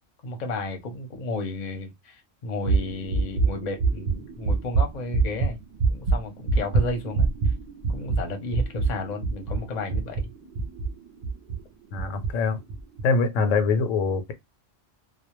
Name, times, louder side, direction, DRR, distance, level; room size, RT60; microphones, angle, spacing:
voice 1, 0.2-5.6 5.9-7.5 7.9-10.3, left 2 dB, 45° left, 0.6 m, -33 dB
sound 1, 2.6-11.6 12.0-12.3 12.7-13.0, right 4 dB, 55° right, 0.5 m, -25 dB
voice 2, 11.9-12.6 13.0-14.3, left 4 dB, 85° left, 0.9 m, -23 dB
2.2 x 2.0 x 2.9 m
omnidirectional pair, 1.3 m